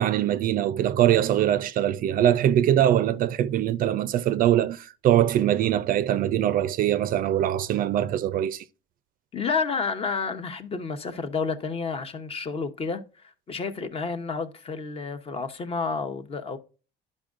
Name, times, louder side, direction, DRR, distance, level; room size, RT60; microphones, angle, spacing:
voice 1, 0.0-8.6, right 11 dB, 45° right, 0.4 m, -22 dB
voice 2, 9.3-16.6, left 5 dB, 30° left, 0.8 m, -30 dB
12.0 x 5.3 x 2.4 m
cardioid pair, 150°, 19 cm